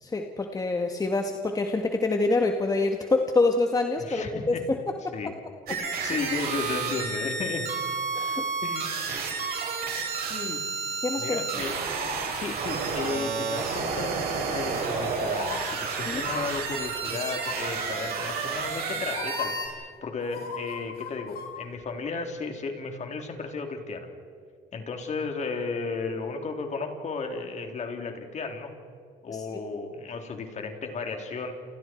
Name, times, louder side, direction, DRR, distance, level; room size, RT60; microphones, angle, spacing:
voice 1, 0.0-4.8 5.0-5.1 8.1-8.5 11.0-11.6 16.1-16.3 29.3-29.4, left 3 dB, 20° left, 4 dB, 1.8 m, -26 dB
voice 2, 4.0-4.6 5.1-5.3 5.7-7.7 8.6-9.0 10.3-10.6 10.9-11.8 12.3-24.1 24.7-28.7 29.2-31.5, left 4 dB, 45° left, 4 dB, 3.7 m, -34 dB
sound 1, 5.7-19.7, right 5 dB, 65° right, 6.5 m, -31 dB
sound 2, 15.2-15.6 16.2-16.4 17.3-17.7 18.6-18.7 19.1-19.5 20.2-21.5 21.8-21.9, left 7 dB, 65° left, 5.5 m, -37 dB
29.5 x 29.0 x 4.7 m, 2.3 s
cardioid pair, 110°, 17 cm